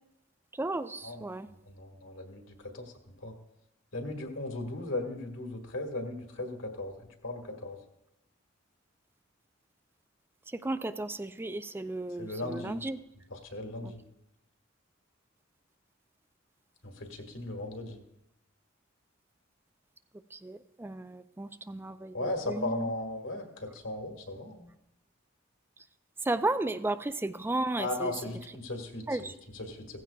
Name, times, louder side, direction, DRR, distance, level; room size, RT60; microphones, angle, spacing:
voice 1, 0.5-1.5 10.5-13.0 13.8-13.9 20.3-22.9 26.2-28.1 29.1-29.3, right 2 dB, 10° right, 12 dB, 0.4 m, -34 dB
voice 2, 1.7-2.9 3.2-3.3 3.9-6.9 7.2-7.8 12.2-12.8 13.3-14.0 16.8-18.0 22.1-24.7 27.8-29.3 29.5-30.0, left 2 dB, 70° left, 3 dB, 1.7 m, -37 dB
16.0 x 15.0 x 2.4 m, 0.88 s
head